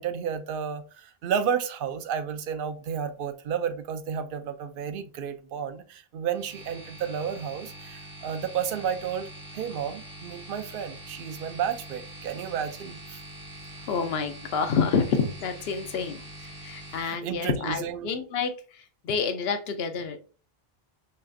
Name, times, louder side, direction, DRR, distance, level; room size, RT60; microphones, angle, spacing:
voice 1, 0.0-9.3 9.5-13.2 16.9-18.1, right 7 dB, 65° right, 0.7 m, -32 dB
sound 1, 6.3-17.0, right 1 dB, 90° right, 2.5 m, -44 dB
voice 2, 13.9-20.2, left 5 dB, 75° left, 0.9 m, -28 dB
5.6 x 2.4 x 2.6 m
omnidirectional pair, 1.0 m